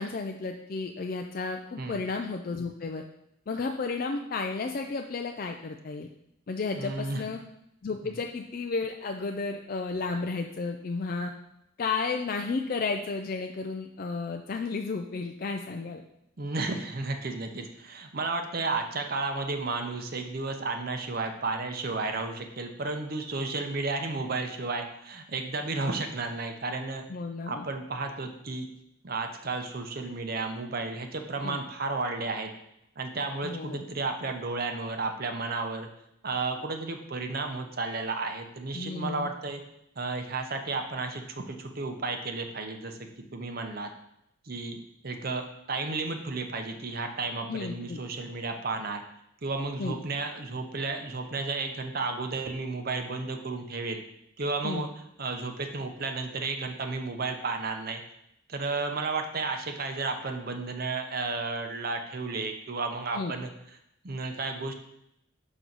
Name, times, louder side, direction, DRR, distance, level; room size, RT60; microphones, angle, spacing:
voice 1, 0.0-3.0 3.5-6.1 6.5-7.4 7.8-11.3 11.8-16.0 27.1-27.7 31.4-31.6 33.4-33.9 38.7-39.3 47.5-48.0 49.8-50.0 54.6-54.9 63.1-63.3, left 4 dB, 45° left, 4 dB, 0.4 m, -33 dB
voice 2, 6.7-7.2 8.0-8.1 16.4-27.0 27.5-28.7 29.0-32.5 33.0-35.9 36.2-39.6 40.0-43.0 43.3-43.9 44.4-49.0 49.4-54.0 54.4-54.9 55.2-58.0 58.5-63.5 64.0-64.8, right 3 dB, 45° right, 5 dB, 0.7 m, -33 dB
6.1 x 5.9 x 4.0 m, 0.79 s
head